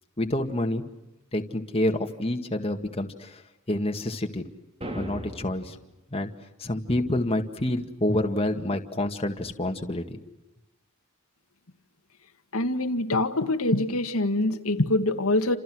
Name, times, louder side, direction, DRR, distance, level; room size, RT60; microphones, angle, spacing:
voice 1, 0.2-0.9 1.3-3.4 3.7-4.4 4.9-5.8 6.1-6.3 6.6-10.2, left 1 dB, 30° left, 4 dB, 2.0 m, -28 dB
sound 1, 4.8-5.8, equal, 30° right, 3.6 m, -37 dB
voice 2, 12.5-15.6, left 2 dB, 90° left, 5 dB, 2.0 m, -24 dB
29.5 x 27.5 x 6.3 m, 0.97 s
head